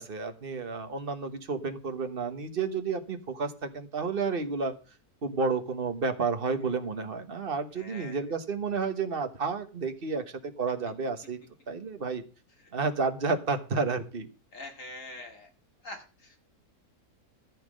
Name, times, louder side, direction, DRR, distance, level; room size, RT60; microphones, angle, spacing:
voice 1, 0.0-4.8 5.2-11.4 11.7-12.2 12.7-14.3, right 4 dB, 40° right, 8 dB, 1.4 m, -31 dB
voice 2, 7.7-8.2 14.5-15.5 15.8-16.4, left 2 dB, 55° left, 4 dB, 2.6 m, -44 dB
14.0 x 5.9 x 6.5 m, 0.34 s
omnidirectional pair, 1.6 m